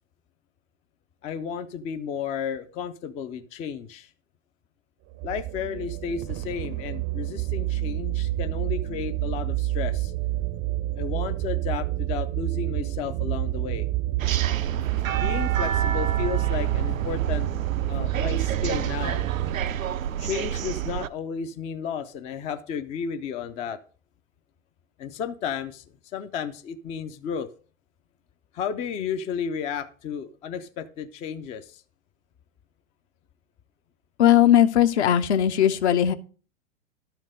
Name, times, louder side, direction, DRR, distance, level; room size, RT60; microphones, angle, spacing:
voice 1, 1.2-4.1 5.2-10.1 11.0-13.9 15.1-17.5 17.9-19.2 20.2-23.8 25.0-25.8 26.1-27.5 28.5-31.8, left 7 dB, 15° left, 9 dB, 0.4 m, -33 dB
sound 1, 5.1-19.6, right 16 dB, 30° right, 0.6 m, -28 dB
sound 2, 14.2-21.1, right 9 dB, 80° right, 0.6 m, -29 dB
voice 2, 34.2-36.1, left 10 dB, 55° left, 9 dB, 0.9 m, -18 dB
12.0 x 4.5 x 6.4 m, 0.40 s
figure-of-eight pair, 100°, 40 cm